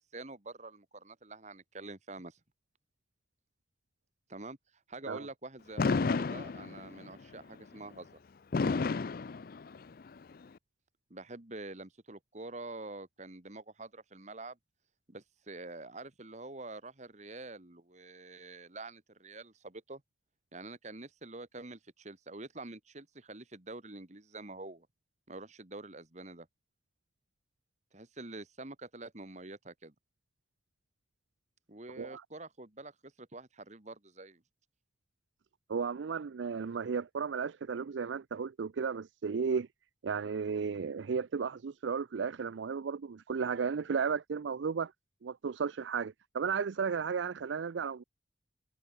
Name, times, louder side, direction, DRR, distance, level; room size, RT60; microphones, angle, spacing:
voice 1, 0.1-2.4 4.3-4.6 4.9-8.2 11.1-14.6 15.1-20.0 20.5-24.9 25.3-26.5 27.9-29.9 31.7-34.4, right 2 dB, 40° right, 1.9 m, -46 dB
Fireworks, 5.8-7.1 8.5-10.1, left 4 dB, 50° left, 0.4 m, -31 dB
voice 2, 35.7-39.7 40.0-44.9 45.2-48.0, right 6 dB, 85° right, 0.5 m, -34 dB
open air
head